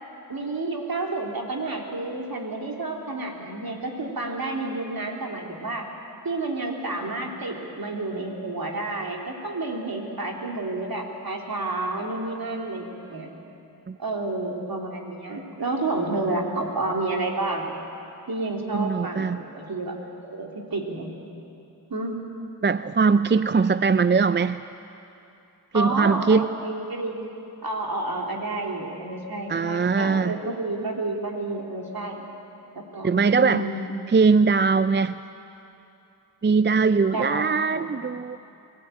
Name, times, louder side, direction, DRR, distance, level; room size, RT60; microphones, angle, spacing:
voice 1, 0.3-5.8 6.2-13.3 14.0-17.7 18.3-20.0 20.2-21.2 21.9-22.2 25.7-27.2 27.6-32.2 32.7-34.0 37.1-37.9, right 2 dB, 60° right, 0 dB, 3.3 m, -30 dB
voice 2, 18.7-19.4 22.6-24.6 25.7-26.5 29.5-30.4 33.0-33.6 34.1-35.2 36.4-38.4, right 5 dB, 30° right, 13 dB, 0.5 m, -21 dB
23.0 x 15.0 x 9.2 m, 2.8 s
cardioid pair, 40°, 40 cm